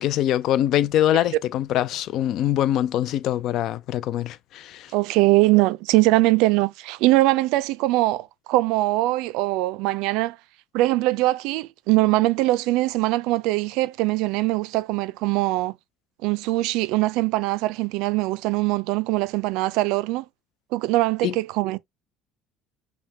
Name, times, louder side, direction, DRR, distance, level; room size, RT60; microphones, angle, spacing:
voice 1, 0.0-4.9 21.2-21.3, left 12 dB, 55° left, 0.4 m, -23 dB
voice 2, 4.9-10.4 10.7-15.7 16.2-20.2 20.7-21.8, right 19 dB, 75° right, 0.3 m, -22 dB
5.6 x 2.2 x 2.7 m
cardioid pair, 155°, 0 cm